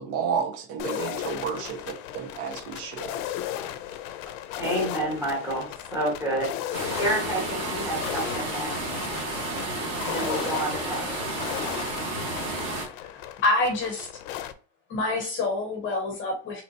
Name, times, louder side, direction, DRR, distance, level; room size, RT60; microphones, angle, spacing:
voice 1, 0.0-3.1, right 7 dB, 75° right, 1.2 m, -31 dB
sound 1, 0.8-14.5, left 11 dB, 60° left, 0.5 m, -36 dB
voice 2, 4.6-6.6 7.0-8.7 10.0-11.3, right 1 dB, 5° right, 1.0 m, -29 dB
sound 2, 6.7-12.9, right 2 dB, 30° right, 1.5 m, -31 dB
voice 3, 13.4-14.1 14.9-16.6, left 2 dB, 25° left, 0.7 m, -26 dB
4.2 x 3.0 x 2.8 m
cardioid pair, 175°, 47 cm